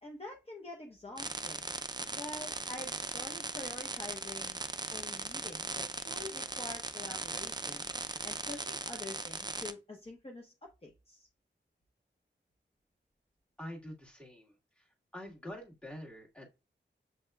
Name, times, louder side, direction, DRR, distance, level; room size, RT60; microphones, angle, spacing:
voice 1, 0.0-1.8 2.1-4.6 4.9-7.9 8.2-11.3, left 2 dB, 30° left, 0 dB, 0.8 m, -46 dB
sound 1, 1.2-9.7, right 3 dB, 20° right, 0.5 m, -39 dB
voice 2, 13.6-14.9 15.1-16.5, left 1 dB, 5° left, -1 dB, 1.6 m, -46 dB
7.6 x 2.8 x 2.3 m, 0.27 s
wide cardioid pair, 70°, 19 cm